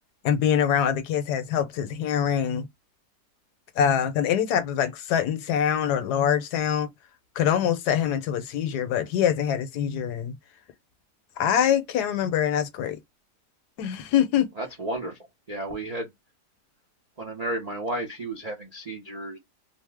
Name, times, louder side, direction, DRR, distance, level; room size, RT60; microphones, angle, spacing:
voice 1, 0.2-2.7 3.8-6.9 7.4-10.4 11.4-13.0 13.8-14.5, left 9 dB, 80° left, 1.1 m, -24 dB
voice 2, 14.6-15.2 15.5-16.1 17.2-19.4, right 1 dB, 80° right, 0.3 m, -32 dB
2.9 x 2.0 x 3.3 m
omnidirectional pair, 1.8 m